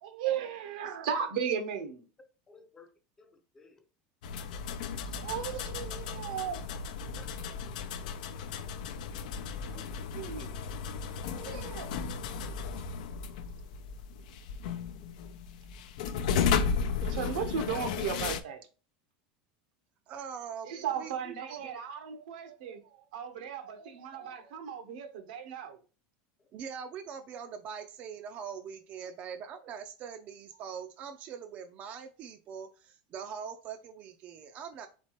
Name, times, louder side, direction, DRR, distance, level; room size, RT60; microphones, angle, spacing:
voice 1, 0.0-2.1 5.2-6.6 9.6-10.5 11.3-11.9 17.0-18.7 20.6-25.8 29.0-29.1, right 8 dB, 85° right, 0.9 m, -36 dB
voice 2, 2.5-2.9 3.2-3.8 5.1-5.3 6.0-6.1 7.1-7.6 23.4-23.5, left 3 dB, 15° left, 0.6 m, -58 dB
sound 1, 4.2-18.4, left 6 dB, 80° left, 0.6 m, -34 dB
voice 3, 20.1-21.3 21.6-21.8 26.5-34.9, right 7 dB, 35° right, 0.4 m, -42 dB
4.4 x 3.9 x 2.9 m
supercardioid pair, 155°, 4 cm